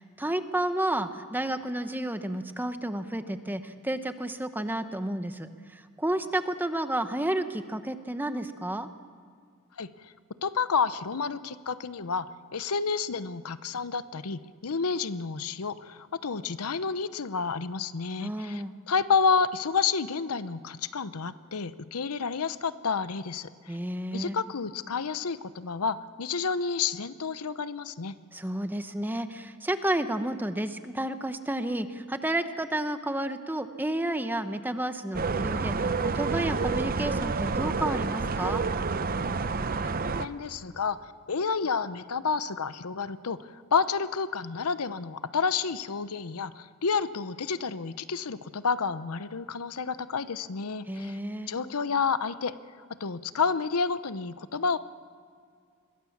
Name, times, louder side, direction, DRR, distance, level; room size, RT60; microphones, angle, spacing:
voice 1, 0.0-8.9 18.2-18.7 23.7-24.4 28.3-38.6 50.9-51.5, right 1 dB, 10° right, 9 dB, 0.9 m, -31 dB
voice 2, 9.8-10.1 10.4-23.8 24.1-28.2 39.7-51.2 51.5-52.5 53.0-54.8, left 5 dB, 85° left, 14 dB, 0.8 m, -30 dB
sound 1, 35.1-40.3, right 4 dB, 40° right, 0.7 m, -29 dB
26.5 x 22.0 x 7.3 m, 2.2 s
head